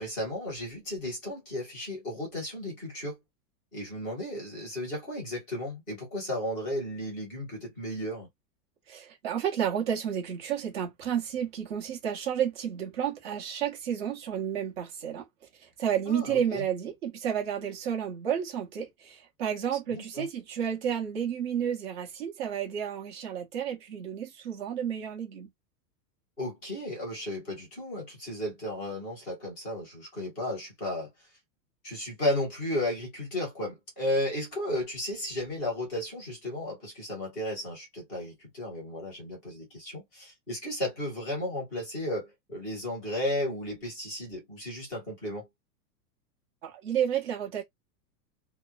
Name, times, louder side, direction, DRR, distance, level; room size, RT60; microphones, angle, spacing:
voice 1, 0.0-3.1 3.7-8.3 16.1-16.6 19.9-20.3 26.4-31.1 31.8-45.5, left 1 dB, ahead, 0.4 m, -34 dB
voice 2, 8.9-15.2 15.6-25.5 46.6-47.6, right 9 dB, 35° right, 1.0 m, -31 dB
2.9 x 2.0 x 2.4 m
supercardioid pair, 175°, 49 cm